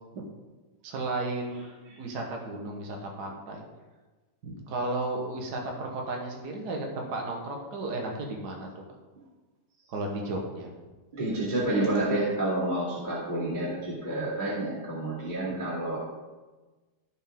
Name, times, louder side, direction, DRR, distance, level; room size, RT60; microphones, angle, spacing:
voice 1, 0.8-1.6 2.0-3.6 4.4-8.9 9.9-10.7, right 2 dB, 55° right, 0 dB, 1.8 m, -34 dB
voice 2, 11.1-16.0, right 1 dB, 20° right, -10 dB, 2.5 m, -29 dB
14.0 x 5.4 x 3.7 m, 1.2 s
omnidirectional pair, 2.4 m